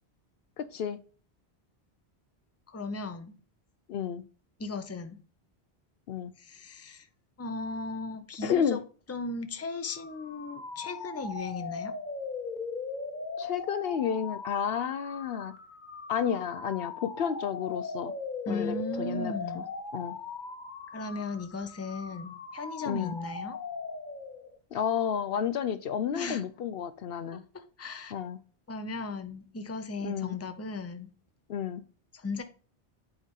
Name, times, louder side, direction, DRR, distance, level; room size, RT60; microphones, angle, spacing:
voice 1, 0.6-1.0 3.9-4.2 6.1-6.3 8.4-8.8 13.4-15.5 16.1-18.1 18.5-19.6 19.9-20.2 22.9-23.2 24.7-27.4 28.1-28.4 30.0-30.4 31.5-31.8, left 8 dB, 70° left, 0.8 m, -31 dB
voice 2, 2.7-3.3 4.6-5.2 6.4-7.1 7.4-8.8 9.1-12.0 18.5-19.6 20.9-23.6 26.1-26.4 27.3-28.1 28.7-31.1 32.1-32.4, left 3 dB, 15° left, 0.6 m, -37 dB
sound 1, 9.9-24.6, left 4 dB, 50° left, 1.1 m, -39 dB
8.3 x 4.7 x 3.7 m
omnidirectional pair, 1.1 m